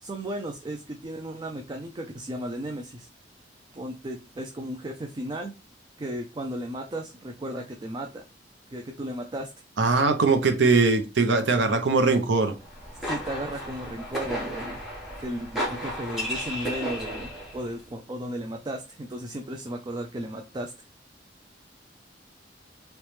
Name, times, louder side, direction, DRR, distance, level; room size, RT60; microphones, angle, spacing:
voice 1, 0.0-3.1 3.7-5.5 6.0-8.2 8.7-9.5 13.0-14.8 15.2-20.7, right 1 dB, 25° right, 2 dB, 0.4 m, -35 dB
voice 2, 9.8-12.5, right 3 dB, 75° right, 6 dB, 0.7 m, -21 dB
sound 1, 12.6-17.7, equal, ahead, 1.3 m, -34 dB
3.1 x 3.0 x 3.2 m, 0.29 s
head